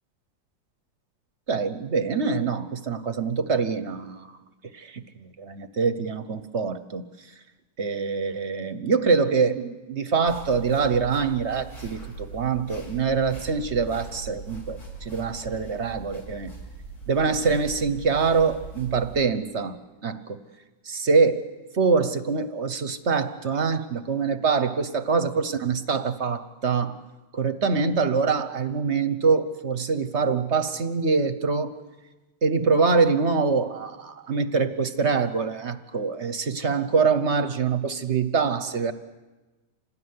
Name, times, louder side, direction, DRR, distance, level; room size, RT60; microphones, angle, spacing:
voice 1, 1.5-4.3 4.7-7.0 7.8-16.5 17.1-19.8 20.0-20.4 20.8-21.4 21.7-27.0 27.3-31.7 32.4-38.9, right 5 dB, 45° right, 11 dB, 1.0 m, -24 dB
sound 1, 10.3-19.2, right 4 dB, 85° left, 8.2 m, -40 dB
27.0 x 19.0 x 9.7 m, 1.2 s
omnidirectional pair, 2.2 m